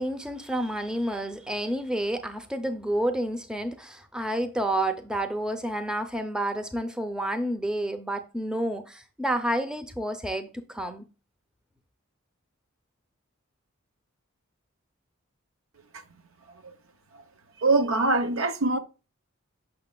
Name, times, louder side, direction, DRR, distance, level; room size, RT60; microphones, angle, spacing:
voice 1, 0.0-11.1, right 1 dB, 5° right, 0.5 m, -29 dB
voice 2, 17.6-18.8, right 2 dB, 75° right, 0.9 m, -24 dB
6.6 x 6.3 x 2.2 m
head